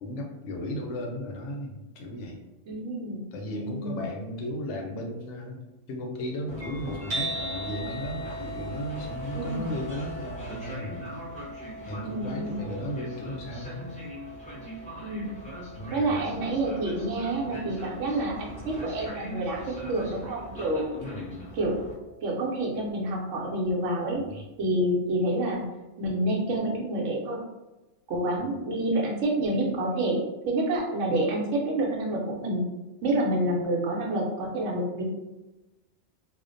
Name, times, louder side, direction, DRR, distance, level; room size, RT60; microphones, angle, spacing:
voice 1, 0.0-2.4 3.3-5.6 5.9-11.0 11.9-13.9 15.8-16.3 20.9-21.5 24.1-24.4 28.5-28.7, left 1 dB, 75° left, 1 dB, 0.8 m, -35 dB
voice 2, 2.7-4.0 9.3-9.7 12.0-12.7 15.0-15.4 15.9-20.9 21.6-21.8 22.2-25.7 26.0-27.4 28.1-32.6 33.0-35.0, right 1 dB, 80° right, -1 dB, 1.0 m, -28 dB
Train, 6.5-21.9, right 1 dB, 10° left, 0.5 m, -42 dB
sound 1, 7.1-23.3, right 1 dB, 55° right, 0.7 m, -42 dB
2.4 x 2.1 x 2.5 m, 1.0 s
omnidirectional pair, 1.3 m